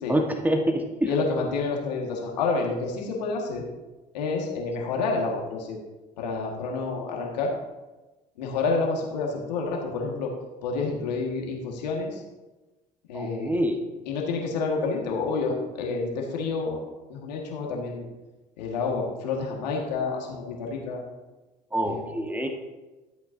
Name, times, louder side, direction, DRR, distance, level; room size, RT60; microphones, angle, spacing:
voice 1, 0.1-1.1 13.1-13.8 21.7-22.5, equal, 10° right, 3 dB, 1.5 m, -26 dB
voice 2, 1.1-3.6 4.1-5.8 6.2-7.5 8.4-10.3 10.6-12.2 13.1-13.5 14.1-16.8 17.1-18.1 18.6-21.0 21.8-22.0, left 4 dB, 85° left, 0 dB, 1.9 m, -29 dB
14.0 x 8.3 x 2.8 m, 1.1 s
hypercardioid pair, 60°, 21 cm